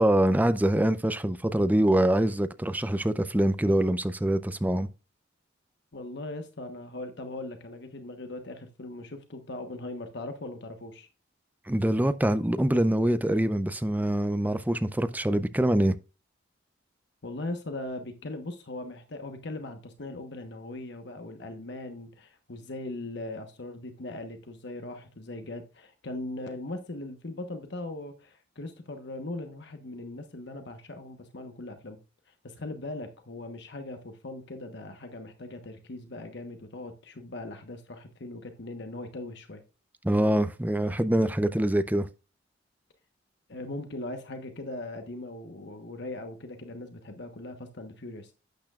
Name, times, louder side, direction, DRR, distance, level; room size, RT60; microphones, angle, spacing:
voice 1, 0.0-4.9 11.7-16.0 40.0-42.1, right 1 dB, 10° right, 0.5 m, -24 dB
voice 2, 5.9-11.1 17.2-32.0 32.3-39.6 43.5-48.3, left 2 dB, 65° left, 1.1 m, -39 dB
11.5 x 8.9 x 2.4 m
head